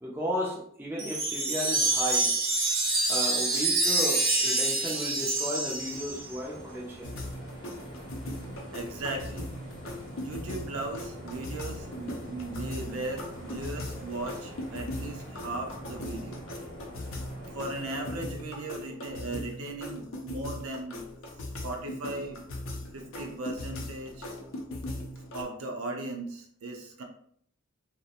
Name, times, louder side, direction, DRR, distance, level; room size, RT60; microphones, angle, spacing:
voice 1, 0.0-2.4 3.1-7.1, equal, 10° right, -4 dB, 0.4 m, -34 dB
Wind chime, 1.0-6.4, right 2 dB, 65° right, 0.8 m, -27 dB
sound 1, 5.3-18.3, equal, 25° left, 0.7 m, -45 dB
sound 2, 7.0-25.4, left 1 dB, 70° left, 0.5 m, -39 dB
voice 2, 8.7-9.5 10.2-16.5 17.5-21.1 21.6-22.4 22.9-24.3 25.3-27.0, right 2 dB, 90° right, 2 dB, 0.5 m, -37 dB
2.4 x 2.0 x 2.7 m, 0.62 s
head